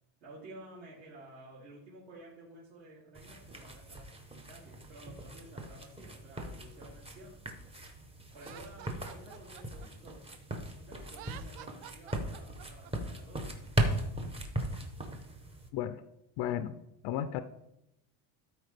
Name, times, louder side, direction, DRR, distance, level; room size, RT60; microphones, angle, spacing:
voice 1, 0.2-4.1 4.5-7.4 8.3-10.3 10.8-13.6, right 1 dB, 55° right, -8 dB, 2.8 m, -52 dB
sound 1, 3.1-15.7, right 1 dB, 10° right, 0.8 m, -38 dB
Laughter, 8.4-10.6 11.1-12.9, right 12 dB, 85° right, 0.7 m, -50 dB
voice 2, 16.4-16.7 17.0-17.4, left 10 dB, 50° left, 10 dB, 0.5 m, -33 dB
13.0 x 4.3 x 3.3 m, 0.83 s
cardioid pair, 140°, 50 cm